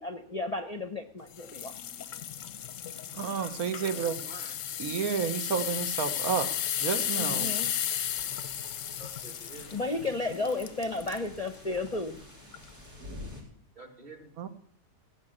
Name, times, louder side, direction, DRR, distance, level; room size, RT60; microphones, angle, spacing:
voice 1, 0.0-1.8 7.1-7.7 9.7-12.2, left 2 dB, 30° left, 8 dB, 0.8 m, -33 dB
sound 1, 1.4-11.3 11.8-12.0 12.5-12.6, left 10 dB, 60° left, 0.9 m, -34 dB
voice 2, 3.1-4.2 4.8-6.5 6.8-7.5 14.4-14.5, right 7 dB, 65° right, 10 dB, 1.6 m, -30 dB
voice 3, 3.7-4.6 9.0-9.8 13.8-14.3, right 2 dB, 30° right, 3 dB, 2.1 m, -49 dB
sound 2, 8.1-13.4, left 1 dB, 90° right, 6.2 m, -49 dB
17.0 x 6.8 x 8.7 m, 0.65 s
omnidirectional pair, 1.7 m